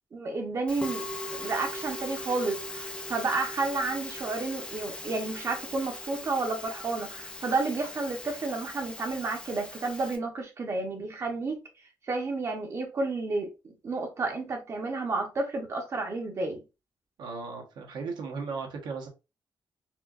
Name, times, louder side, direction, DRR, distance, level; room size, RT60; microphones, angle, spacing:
voice 1, 0.1-1.0 1.3-11.6 12.0-13.5 13.8-16.6, right 3 dB, 40° right, 0.9 m, -31 dB
Musical instrument, 0.7-10.2, left 1 dB, 15° left, 0.5 m, -39 dB
voice 2, 17.2-19.1, right 4 dB, 75° right, 1.1 m, -36 dB
4.4 x 2.5 x 2.4 m
cardioid pair, 140°, 8 cm